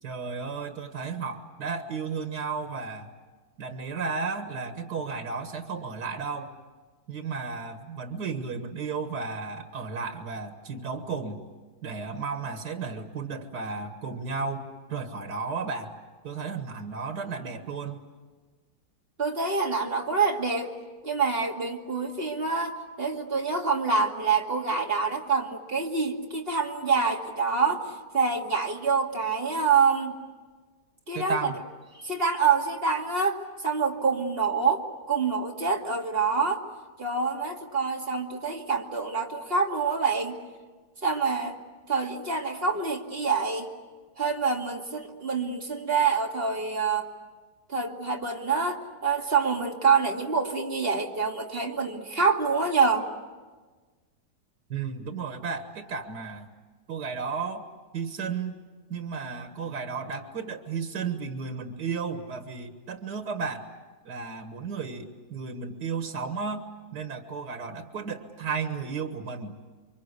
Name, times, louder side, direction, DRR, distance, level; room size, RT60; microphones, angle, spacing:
voice 1, 0.0-3.1 3.6-6.5 7.1-11.4 11.8-16.0 16.2-18.0 31.1-31.6 54.7-56.5 56.9-57.7 57.9-58.6 58.9-63.7 64.1-66.7 66.9-69.5, right 5 dB, 90° right, 6 dB, 2.2 m, -33 dB
voice 2, 19.2-20.8 21.0-30.1 31.1-31.5 32.0-36.6 37.0-40.4 41.0-41.6 41.9-43.7 44.2-47.1 47.7-53.1, right 5 dB, 35° right, 0 dB, 2.6 m, -26 dB
29.5 x 24.5 x 8.3 m, 1.3 s
omnidirectional pair, 1.7 m